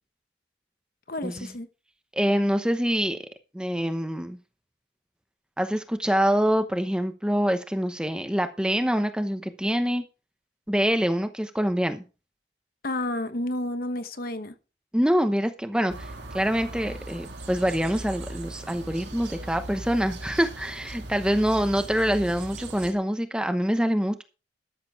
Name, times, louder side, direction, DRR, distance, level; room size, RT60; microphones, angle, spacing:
voice 1, 1.1-1.7 12.8-14.5, left 1 dB, 55° left, 1.1 m, -30 dB
voice 2, 2.1-3.2 3.5-4.4 5.6-10.0 10.7-12.0 14.9-24.2, equal, 5° right, 0.9 m, -25 dB
sound 1, 15.9-22.9, right 2 dB, 70° right, 2.7 m, -39 dB
13.0 x 7.6 x 4.8 m
head